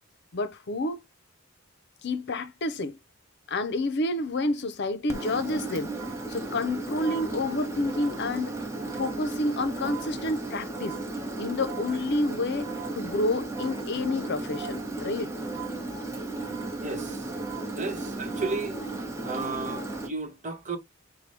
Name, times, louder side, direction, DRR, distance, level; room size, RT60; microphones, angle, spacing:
voice 1, 0.3-1.0 2.0-3.0 3.5-5.9 6.3-8.6 8.9-11.0 11.4-12.7 12.9-15.3, left 2 dB, 60° left, 0.6 m, -29 dB
Engine, 5.1-20.1, right 2 dB, 15° right, 1.1 m, -35 dB
voice 2, 16.8-17.3 17.7-18.8 19.2-20.8, right 3 dB, 40° right, 1.2 m, -33 dB
5.9 x 2.2 x 3.3 m
head